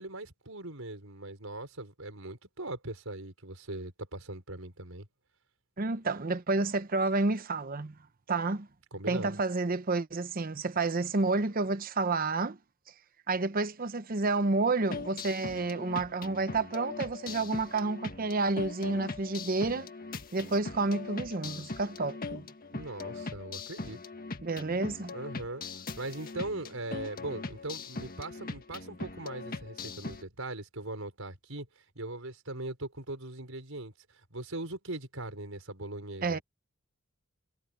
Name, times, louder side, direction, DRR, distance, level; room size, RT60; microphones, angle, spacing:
voice 1, 0.0-5.1 8.9-9.4 22.7-24.0 25.1-25.7 26.0-31.7 32.0-33.9 34.3-36.4, right 2 dB, 80° right, 5.2 m, -40 dB
voice 2, 5.8-7.9 8.3-8.7 9.1-12.6 13.3-19.9 20.3-22.4 24.4-25.1 36.2-36.4, right 3 dB, 45° right, 0.8 m, -30 dB
sound 1, 14.9-30.2, left 3 dB, 45° left, 1.7 m, -41 dB
head